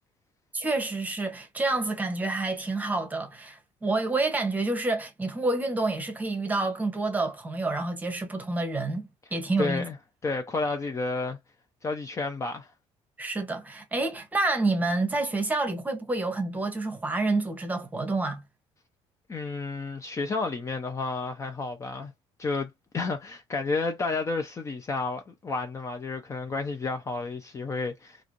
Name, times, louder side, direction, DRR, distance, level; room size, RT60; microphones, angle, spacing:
voice 1, 0.5-9.9 13.2-18.4, right 2 dB, 15° right, 0.9 m, -28 dB
voice 2, 9.6-10.0 10.2-11.4 11.8-12.7 19.3-22.1 22.4-28.2, left 3 dB, 25° left, 0.5 m, -31 dB
3.1 x 2.5 x 2.5 m
cardioid pair, 130°, 12 cm